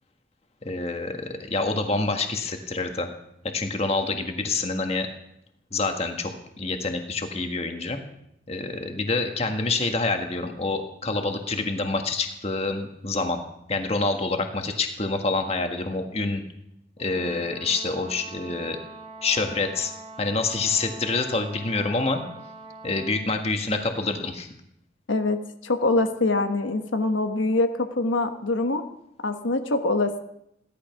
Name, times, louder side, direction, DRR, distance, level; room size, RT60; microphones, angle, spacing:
voice 1, 0.6-3.1 3.5-5.1 5.7-8.0 8.5-13.4 13.7-16.4 17.0-18.8 19.2-19.9 20.2-22.2 22.8-24.5, left 3 dB, 35° left, 4 dB, 1.7 m, -27 dB
Brass instrument, 17.0-23.4, right 3 dB, 30° right, 2.8 m, -43 dB
voice 2, 25.1-28.8 29.2-30.2, left 2 dB, 90° left, 6 dB, 1.3 m, -24 dB
17.0 x 12.5 x 5.9 m, 0.78 s
head